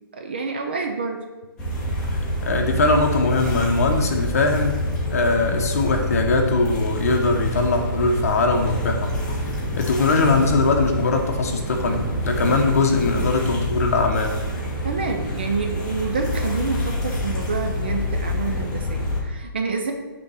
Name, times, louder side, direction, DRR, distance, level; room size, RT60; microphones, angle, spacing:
voice 1, 0.1-1.2 14.8-19.9, right 4 dB, 25° right, 4 dB, 0.4 m, -28 dB
sound 1, 1.6-19.2, left 1 dB, 5° left, 0.8 m, -27 dB
voice 2, 2.1-4.7 5.1-9.1 9.8-14.4, left 3 dB, 40° left, 4 dB, 0.8 m, -21 dB
sound 2, 2.3-13.3, right 3 dB, 50° right, 2.1 m, -40 dB
6.6 x 3.5 x 5.5 m, 1.2 s
hypercardioid pair, 175°, 12 cm